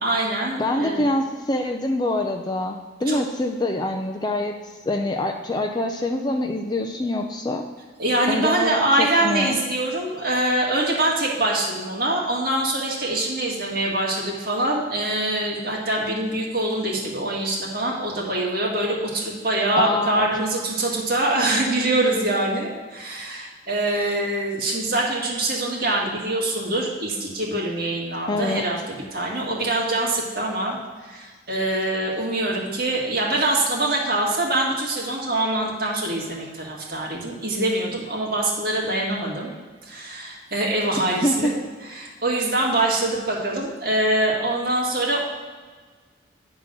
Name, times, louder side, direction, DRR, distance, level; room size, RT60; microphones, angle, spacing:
voice 1, 0.0-1.0 3.1-3.2 8.0-39.5 39.8-45.2, right 1 dB, 50° right, -3 dB, 1.8 m, -24 dB
voice 2, 0.6-7.7 8.3-9.6 19.8-20.3 28.3-28.7 41.2-41.5, left 1 dB, 20° left, 3 dB, 0.4 m, -25 dB
9.9 x 3.7 x 6.2 m, 1.4 s
head